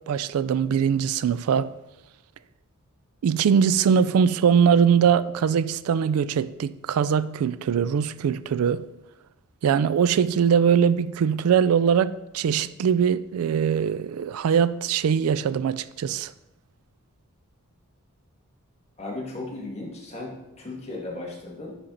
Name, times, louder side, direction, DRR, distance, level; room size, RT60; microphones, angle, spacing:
voice 1, 0.1-1.7 3.2-8.8 9.6-16.3, right 7 dB, 90° right, 0.3 m, -22 dB
voice 2, 19.0-21.8, left 2 dB, 30° left, 1.8 m, -36 dB
10.0 x 4.5 x 3.9 m
head